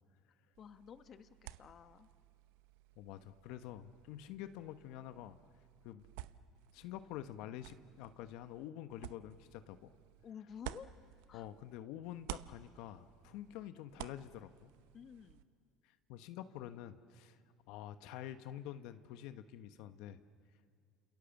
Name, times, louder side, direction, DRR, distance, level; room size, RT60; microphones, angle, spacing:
voice 1, 0.6-2.1 10.2-10.9 11.3-11.5 14.9-15.4, left 8 dB, 40° left, 11 dB, 1.0 m, -52 dB
sound 1, 0.6-11.7 12.0-15.4, right 15 dB, 80° right, 0.8 m, -53 dB
voice 2, 3.0-5.4 5.8-6.1 6.7-9.9 11.3-14.7 16.1-17.4 17.7-20.2, left 11 dB, 70° left, 10 dB, 1.1 m, -48 dB
29.0 x 27.5 x 7.2 m, 2.4 s
supercardioid pair, 95°, 0 cm